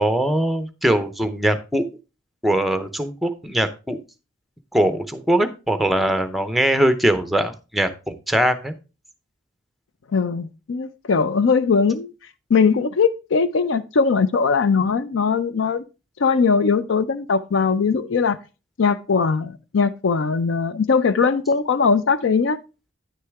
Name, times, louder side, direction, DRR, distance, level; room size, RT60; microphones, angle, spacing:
voice 1, 0.0-1.9 2.4-4.0 4.7-8.7, right 1 dB, ahead, 0.6 m, -21 dB
voice 2, 10.1-12.1 12.5-15.8 16.2-18.4 18.8-22.6, left 5 dB, 75° left, 0.5 m, -20 dB
9.6 x 6.5 x 3.5 m
head